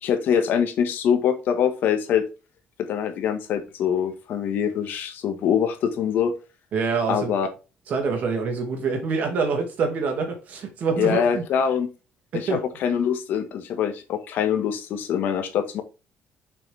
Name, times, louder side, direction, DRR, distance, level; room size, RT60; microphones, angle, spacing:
voice 1, 0.0-2.2 2.8-6.3 7.1-7.5 11.0-11.9 12.3-15.8, left 8 dB, 60° left, 1.6 m, -24 dB
voice 2, 6.7-7.3 7.9-11.4 12.3-12.6, right 4 dB, 45° right, 2.4 m, -25 dB
6.9 x 5.9 x 3.5 m
cardioid pair, 170°, 4 cm